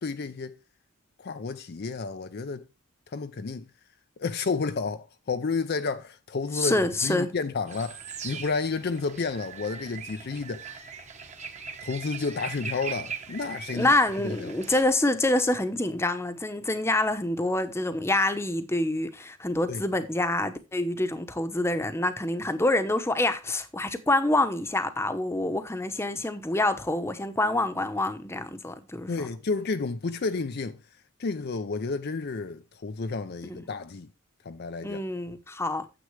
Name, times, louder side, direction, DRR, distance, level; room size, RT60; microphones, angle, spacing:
voice 1, 0.0-0.6 1.2-2.7 3.1-3.7 4.2-10.8 11.8-13.9 14.2-14.5 19.7-19.8 29.1-30.8 31.2-34.1 34.4-35.0, left 4 dB, 50° left, 0.5 m, -31 dB
voice 2, 6.5-7.3 13.7-29.3 33.4-33.6 34.8-35.9, left 2 dB, 10° left, 0.9 m, -26 dB
sound 1, 7.7-14.8, right 6 dB, 35° right, 1.2 m, -40 dB
9.6 x 7.7 x 3.2 m
head